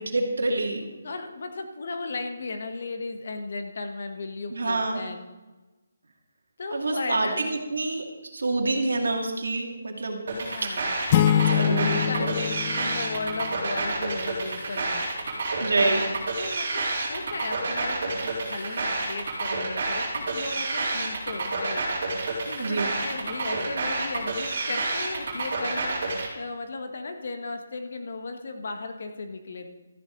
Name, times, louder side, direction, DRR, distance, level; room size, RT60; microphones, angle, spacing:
voice 1, 0.0-0.9 4.5-5.0 6.7-10.2 10.6-10.7 11.5-12.3 15.6-16.1 22.6-23.0, right 2 dB, 85° right, 3 dB, 2.2 m, -27 dB
voice 2, 1.0-5.2 6.6-7.4 10.3-10.9 11.4-15.1 16.4-29.7, left 3 dB, 55° left, 6 dB, 1.4 m, -36 dB
sound 1, 10.3-26.3, right 3 dB, 45° right, 3.7 m, -29 dB
sound 2, 11.1-13.9, left 11 dB, 25° left, 0.4 m, -25 dB
13.5 x 9.7 x 3.9 m, 1.1 s
hypercardioid pair, 170°, 0 cm